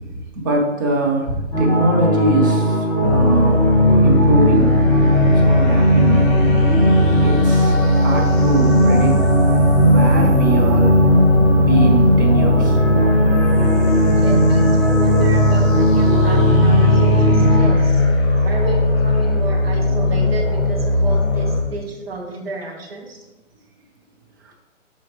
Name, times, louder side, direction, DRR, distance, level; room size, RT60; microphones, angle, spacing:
voice 1, 0.1-3.6 4.0-4.8 5.4-6.4 7.2-9.2 9.8-11.2 11.6-12.8 24.4-24.5, right 2 dB, 15° right, 0 dB, 0.7 m, -23 dB
sound 1, 1.5-17.7, right 1 dB, ahead, 1.7 m, -17 dB
sound 2, 3.0-21.6, left 2 dB, 40° left, 2.2 m, -18 dB
voice 2, 14.1-18.0 18.4-23.3, right 2 dB, 50° right, 0 dB, 1.7 m, -31 dB
7.5 x 5.6 x 3.3 m, 1.1 s
figure-of-eight pair, 140°, 39 cm